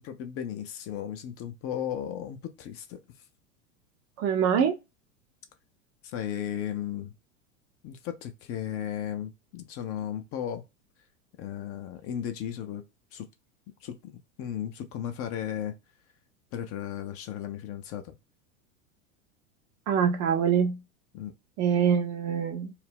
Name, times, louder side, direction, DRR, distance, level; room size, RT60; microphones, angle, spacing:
voice 1, 0.0-3.0 6.0-7.1 7.8-10.6 11.4-12.8 13.1-13.3 13.8-15.7 16.5-18.2 21.1-21.3, left 10 dB, 35° left, 0.4 m, -35 dB
voice 2, 4.2-4.8 19.9-20.8 21.6-22.7, right 7 dB, 40° right, 0.5 m, -24 dB
2.4 x 2.0 x 3.3 m
hypercardioid pair, 95°, 41 cm